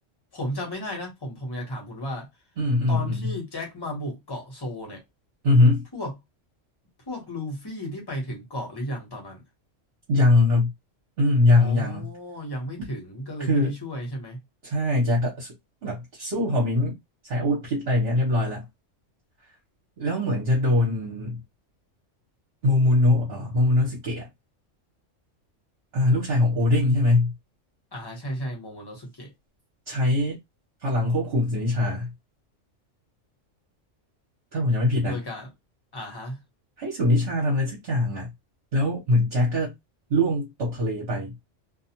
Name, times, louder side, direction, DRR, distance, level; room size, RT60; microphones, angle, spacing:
voice 1, 0.3-2.3 2.9-5.0 5.9-6.1 7.1-9.4 11.6-14.4 27.9-29.3 35.0-35.5 35.9-36.4, equal, 20° left, 1.0 m, -34 dB
voice 2, 2.6-3.3 5.4-5.8 10.1-10.7 11.2-12.1 12.8-12.9 13.4-13.7 14.6-15.5 15.8-17.0 17.2-18.7 20.0-21.4 22.6-24.3 25.9-27.3 29.9-30.4 30.8-32.1 34.5-35.2 36.8-38.3 38.7-39.7 40.1-41.3, left 2 dB, 55° right, 1.1 m, -22 dB
2.4 x 2.3 x 2.8 m
omnidirectional pair, 1.3 m